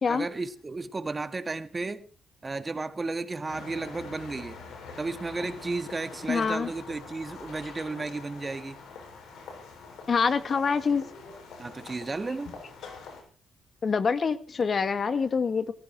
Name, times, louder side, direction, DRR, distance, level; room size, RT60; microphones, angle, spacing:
voice 1, 0.0-2.1 2.4-4.6 5.0-8.8 11.6-12.6, right 3 dB, 30° right, 2.0 m, -33 dB
sound 1, 3.5-13.2, left 4 dB, 90° left, 7.0 m, -45 dB
voice 2, 6.3-6.7 10.1-11.0 13.8-15.7, left 5 dB, 50° left, 1.9 m, -25 dB
20.0 x 15.0 x 4.7 m
cardioid pair, 85°, 0 cm